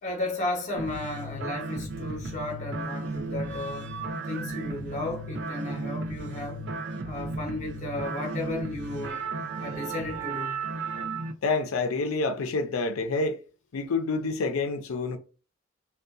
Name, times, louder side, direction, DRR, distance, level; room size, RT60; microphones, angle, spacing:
voice 1, 0.0-3.9 4.3-6.7 7.0-9.2 9.6-10.7, left 2 dB, 35° left, 0.7 m, -34 dB
sound 1, 0.8-11.3, right 3 dB, 55° right, 0.4 m, -34 dB
voice 2, 11.4-13.4 13.7-15.2, left 3 dB, 85° left, 0.5 m, -28 dB
2.7 x 2.2 x 2.4 m
head